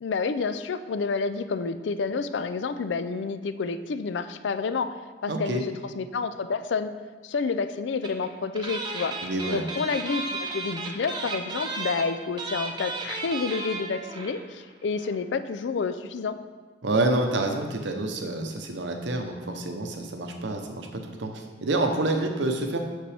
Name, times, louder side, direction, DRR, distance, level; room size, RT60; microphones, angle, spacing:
voice 1, 0.0-4.9 5.2-6.9 7.2-9.2 9.5-16.4, left 4 dB, 75° left, 12 dB, 0.4 m, -29 dB
voice 2, 5.3-5.6 9.2-9.6 16.8-22.8, right 2 dB, 75° right, 4 dB, 0.8 m, -28 dB
sound 1, 8.0-8.3 8.5-14.4 14.7-14.8 15.0-15.2, right 3 dB, 25° right, 0.6 m, -34 dB
7.4 x 6.0 x 3.4 m, 1.4 s
head